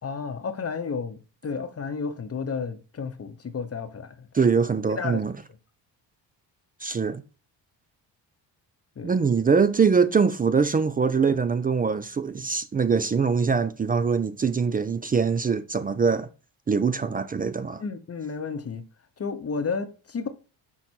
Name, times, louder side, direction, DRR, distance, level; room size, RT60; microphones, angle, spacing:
voice 1, 0.0-4.5 5.0-5.2 9.0-9.1 17.8-18.8 19.2-20.3, left 5 dB, 30° left, 0.8 m, -32 dB
voice 2, 4.3-5.3 6.8-7.2 9.0-16.3 16.7-17.8, right 5 dB, 20° right, 0.3 m, -23 dB
6.1 x 3.9 x 4.3 m
cardioid pair, 90°, 45 cm